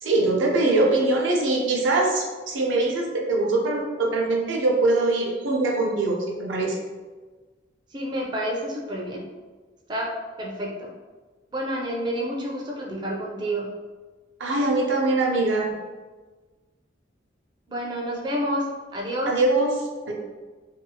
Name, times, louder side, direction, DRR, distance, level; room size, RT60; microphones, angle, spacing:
voice 1, 0.0-6.7 14.4-15.7 19.3-19.7 20.0-20.1, right 2 dB, 75° right, -1 dB, 0.6 m, -22 dB
voice 2, 7.9-9.3 9.9-10.1 10.4-10.9 11.5-13.7 17.7-19.4, equal, 25° right, -3 dB, 0.4 m, -29 dB
2.7 x 2.3 x 2.7 m, 1.3 s
head